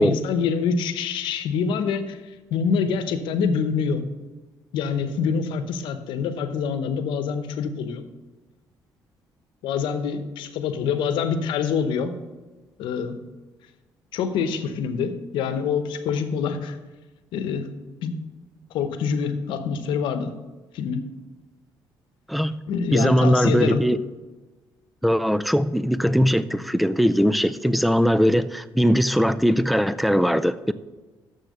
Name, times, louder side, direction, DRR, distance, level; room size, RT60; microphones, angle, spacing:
voice 1, 0.0-2.2 2.5-4.0 4.7-8.0 9.6-12.1 12.8-13.2 14.1-16.8 17.3-17.7 18.0-18.2 18.7-20.4 20.7-21.1 22.7-23.9, left 6 dB, 85° left, 9 dB, 0.9 m, -25 dB
voice 2, 22.3-22.6 22.9-24.0 25.0-30.7, equal, ahead, 14 dB, 0.3 m, -20 dB
7.1 x 6.5 x 6.5 m, 1.2 s
cardioid pair, 125°, 8 cm